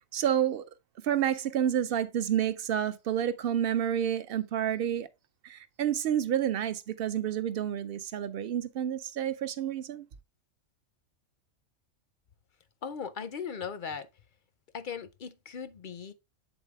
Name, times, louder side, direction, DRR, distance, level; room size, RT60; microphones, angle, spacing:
voice 1, 0.1-0.6 1.0-5.1 5.4-10.1, right 10 dB, 60° right, 0.7 m, -29 dB
voice 2, 12.8-14.1 14.7-16.1, left 6 dB, 55° left, 0.6 m, -38 dB
8.2 x 4.0 x 3.4 m
omnidirectional pair, 1.3 m